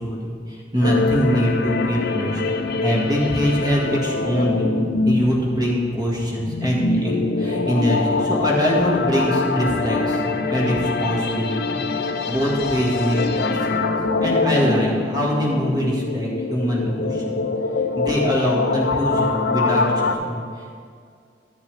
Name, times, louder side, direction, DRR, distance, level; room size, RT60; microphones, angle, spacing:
voice 1, 0.0-2.4 2.8-13.9 14.2-17.4 18.0-20.4, equal, 25° right, -4 dB, 1.8 m, -23 dB
sound 1, 0.8-20.1, left 3 dB, 65° left, 0.6 m, -24 dB
12.5 x 7.2 x 3.4 m, 2.2 s
head